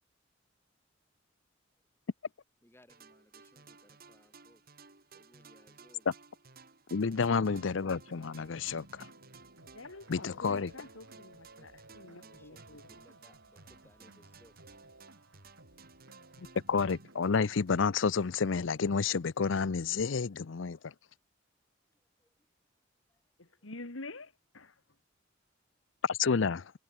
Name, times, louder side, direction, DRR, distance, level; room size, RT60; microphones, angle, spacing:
voice 1, 2.6-4.6 5.1-6.1 11.5-14.8 21.9-22.3 23.1-23.2 23.6-23.7, left 1 dB, 10° left, 7.9 m, -64 dB
sound 1, 2.9-18.3, right 4 dB, 50° right, 3.2 m, -57 dB
voice 2, 6.9-9.1 10.1-10.7 16.4-20.9 26.0-26.7, left 5 dB, 70° left, 0.6 m, -30 dB
sound 2, 7.4-17.4, right 2 dB, 75° right, 6.7 m, -58 dB
voice 3, 9.6-13.1 23.4-25.0, left 2 dB, 85° left, 2.2 m, -48 dB
head